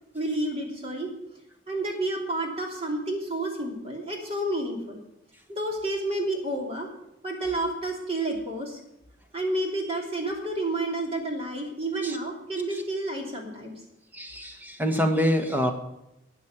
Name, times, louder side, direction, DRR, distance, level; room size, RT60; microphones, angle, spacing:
voice 1, 0.1-1.1 1.7-5.0 5.5-6.9 7.2-8.8 9.3-13.7, right 1 dB, 30° right, 1 dB, 3.1 m, -30 dB
voice 2, 14.1-15.7, equal, 10° right, 5 dB, 1.4 m, -25 dB
13.0 x 8.5 x 7.3 m, 0.86 s
head